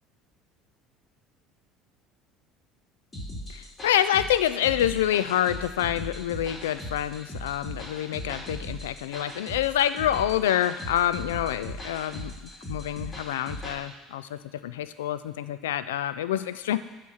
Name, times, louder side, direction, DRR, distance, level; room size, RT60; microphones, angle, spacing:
sound 1, 3.1-13.8, equal, 25° left, 2.3 m, -39 dB
voice 1, 3.5-12.3 12.7-16.8, left 11 dB, 80° left, 13 dB, 0.3 m, -27 dB
8.5 x 3.0 x 6.2 m, 1.2 s
hypercardioid pair, 70°, 0 cm